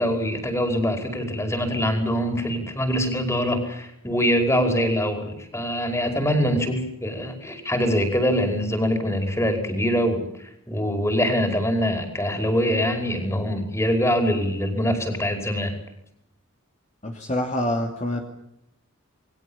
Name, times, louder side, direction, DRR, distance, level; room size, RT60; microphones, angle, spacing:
voice 1, 0.0-15.8, equal, 15° left, 5 dB, 5.3 m, -24 dB
voice 2, 17.0-18.2, left 1 dB, 35° left, 2 dB, 2.8 m, -26 dB
29.0 x 22.5 x 7.4 m, 0.80 s
head